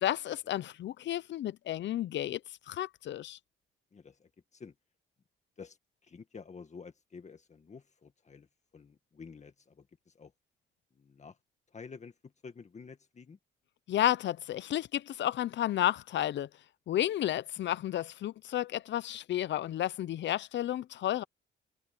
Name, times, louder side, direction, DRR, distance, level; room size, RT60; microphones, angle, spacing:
voice 1, 0.0-2.4 2.7-3.4 13.9-16.5 16.9-21.2, left 12 dB, 65° left, 0.7 m, -32 dB
voice 2, 3.9-4.7 5.6-5.8 6.0-8.5 8.7-10.3 11.0-11.4 11.7-13.4, left 5 dB, 35° left, 1.9 m, -50 dB
cardioid pair, 90°, 20 cm